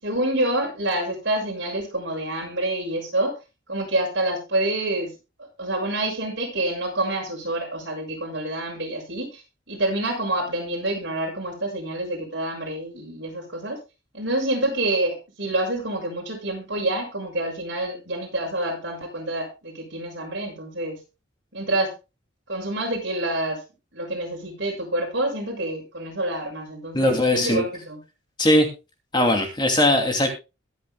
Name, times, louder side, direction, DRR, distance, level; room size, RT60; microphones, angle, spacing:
voice 1, 0.0-3.3 3.7-5.1 5.6-13.8 14.1-21.0 21.5-21.9 22.5-23.6 23.9-28.0, right 1 dB, 60° right, 0 dB, 6.5 m, -27 dB
voice 2, 26.9-27.6 28.4-28.7 29.1-30.3, left 1 dB, 20° left, 3 dB, 2.6 m, -19 dB
22.5 x 7.9 x 2.2 m, 0.28 s
head